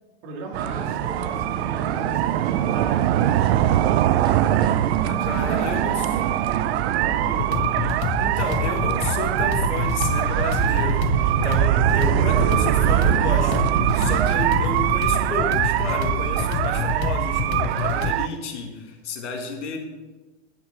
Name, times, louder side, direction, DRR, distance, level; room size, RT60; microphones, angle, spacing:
voice 1, 0.2-3.9 5.3-6.4 6.9-7.7 13.4-13.7, right 4 dB, 50° right, 0 dB, 2.5 m, -36 dB
sound 1, 0.5-18.3, right 13 dB, 65° right, 0.5 m, -22 dB
sound 2, 0.6-9.6, right 1 dB, 15° right, 2.2 m, -38 dB
voice 2, 5.0-6.0 8.2-13.7 14.0-19.8, left 4 dB, 85° left, 3 dB, 2.0 m, -31 dB
sound 3, 7.2-18.1, left 12 dB, 45° left, 0.6 m, -29 dB
11.0 x 5.9 x 5.8 m, 1.2 s
supercardioid pair, 130°, 34 cm